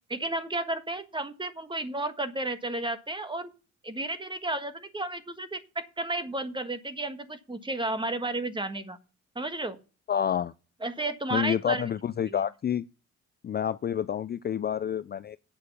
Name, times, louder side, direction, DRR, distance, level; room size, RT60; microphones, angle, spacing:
voice 1, 0.1-3.5 3.8-9.0 9.3-9.8 10.8-11.9 12.2-12.4, right 2 dB, 15° right, 1.5 m, -32 dB
voice 2, 10.1-10.5 11.3-12.8 13.4-15.4, left 9 dB, 35° left, 0.4 m, -28 dB
8.7 x 6.5 x 6.9 m
cardioid pair, 90°, 30 cm